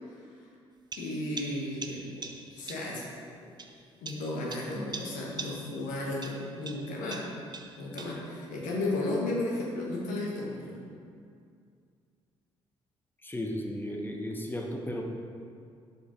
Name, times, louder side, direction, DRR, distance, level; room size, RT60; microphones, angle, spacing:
voice 1, 0.1-0.5 1.0-2.2 2.5-3.0 3.4-3.5 4.0-7.2 7.8-10.8, left 2 dB, 70° left, -3 dB, 1.3 m, -34 dB
sound 1, 0.9-3.0 3.6-5.9 6.2-8.3, right 4 dB, 30° right, 0.6 m, -43 dB
voice 2, 13.2-15.0, left 1 dB, 15° left, 1 dB, 1.1 m, -34 dB
5.4 x 4.7 x 4.4 m, 2.3 s
hypercardioid pair, 50°, 14 cm